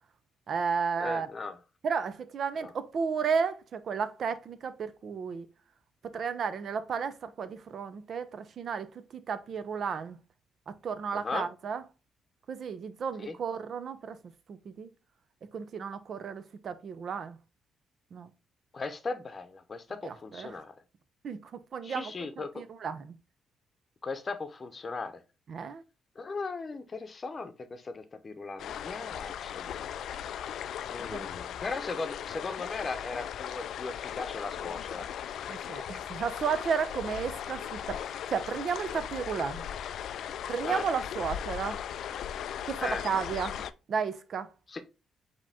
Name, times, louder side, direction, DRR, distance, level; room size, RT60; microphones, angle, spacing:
voice 1, 0.5-1.3 1.8-5.5 6.0-10.2 10.7-11.8 12.5-14.2 14.5-14.9 15.5-17.4 18.1-18.3 20.0-20.6 21.2-22.1 22.6-23.1 25.5-25.8 31.1-31.3 35.5-39.7 40.5-41.8 42.7-44.5, right 6 dB, 55° right, 0.6 m, -33 dB
voice 2, 1.0-1.6 2.6-2.7 11.1-11.5 13.2-13.4 18.7-20.7 21.8-22.6 24.0-25.2 26.2-29.9 30.9-35.1 40.6-40.9 42.8-43.0 44.7-44.8, left 3 dB, 35° left, 0.8 m, -37 dB
sound 1, 28.6-43.7, left 9 dB, 70° left, 0.3 m, -38 dB
5.0 x 2.9 x 3.4 m
cardioid pair, 90°, 0 cm